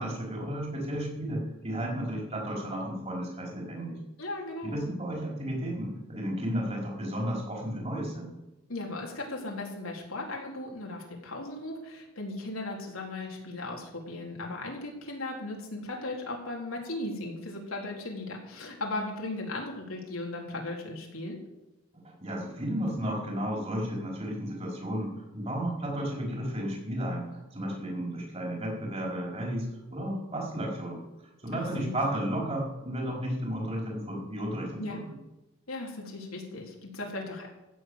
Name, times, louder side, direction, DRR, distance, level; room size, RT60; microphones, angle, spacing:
voice 1, 0.0-4.0 4.6-8.3 21.9-31.0 31.4-35.0, equal, 30° right, -2 dB, 4.7 m, -33 dB
voice 2, 4.2-4.8 8.7-21.4 31.5-32.0 34.8-35.0 35.7-37.5, left 2 dB, 85° left, -1 dB, 3.9 m, -37 dB
15.5 x 7.4 x 8.1 m, 1.0 s
head